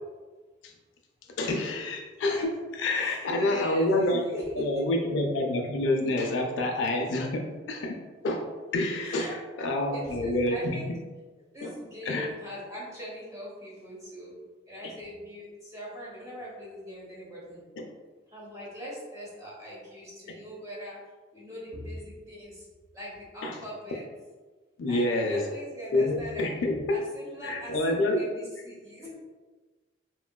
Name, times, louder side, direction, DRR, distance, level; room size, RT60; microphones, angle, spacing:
voice 1, 1.4-4.2 4.6-8.0 8.2-8.5 8.7-10.8 11.6-11.7 12.1-12.3 14.8-14.9 17.8-17.9 23.4-23.6 24.8-25.4 25.9-27.0 27.4-28.2, left 2 dB, 70° left, 2 dB, 0.4 m, -27 dB
voice 2, 2.9-5.1 9.0-9.4 9.9-10.9 11.4-14.3 14.7-17.6 18.3-21.0 21.3-22.7 22.9-24.0 24.9-26.5 26.9-29.1, equal, 15° right, -6 dB, 0.9 m, -41 dB
3.6 x 2.2 x 2.2 m, 1.3 s
head